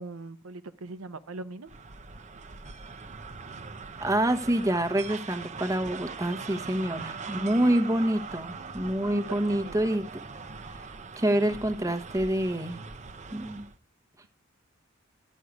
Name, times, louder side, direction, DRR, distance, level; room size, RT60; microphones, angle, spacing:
voice 1, 0.0-1.7 6.4-7.2 7.5-7.8 9.1-9.8, right 3 dB, 85° right, 0.9 m, -42 dB
sound 1, 1.7-13.8, right 4 dB, 35° right, 0.9 m, -41 dB
voice 2, 4.0-10.1 11.2-12.8 13.3-13.6, right 1 dB, 15° right, 1.2 m, -27 dB
13.0 x 6.5 x 9.6 m
head